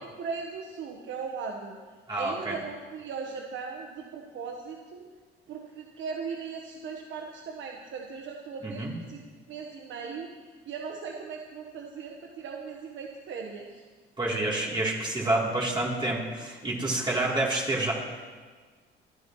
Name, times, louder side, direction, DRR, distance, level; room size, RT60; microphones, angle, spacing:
voice 1, 0.2-1.8 2.2-5.0 5.5-8.8 9.1-9.2 9.5-10.3 10.6-13.8, right 5 dB, 70° right, 1 dB, 1.3 m, -38 dB
voice 2, 2.1-2.6 8.6-8.9 14.2-17.9, right 2 dB, 25° right, -5 dB, 3.3 m, -28 dB
27.5 x 11.0 x 3.1 m, 1.5 s
cardioid pair, 85°, 20 cm